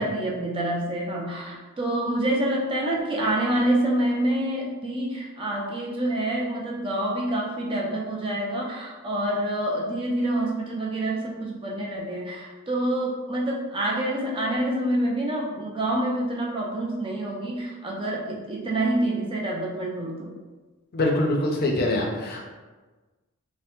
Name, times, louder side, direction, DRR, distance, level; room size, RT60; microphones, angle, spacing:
voice 1, 0.0-20.3, right 1 dB, 25° right, -2 dB, 0.4 m, -27 dB
voice 2, 20.9-22.4, left 1 dB, 45° left, 0 dB, 0.4 m, -24 dB
3.2 x 2.0 x 2.8 m, 1.3 s
head